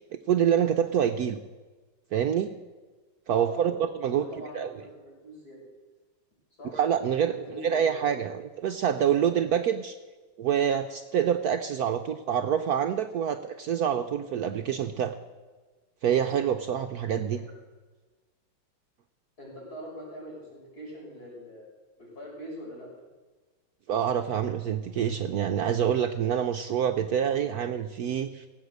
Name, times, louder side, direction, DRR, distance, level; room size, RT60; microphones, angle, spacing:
voice 1, 0.3-1.4 2.1-2.5 3.3-4.3 4.5-4.7 6.7-9.9 10.4-15.1 16.0-17.4 23.9-28.5, right 8 dB, 65° right, 6 dB, 1.0 m, -26 dB
voice 2, 3.3-3.8 4.1-5.7 6.6-6.7 7.2-7.9 17.3-17.4 19.4-21.7 22.0-22.9, equal, 50° left, -4 dB, 6.8 m, -43 dB
18.0 x 8.2 x 8.0 m, 1.3 s
omnidirectional pair, 2.0 m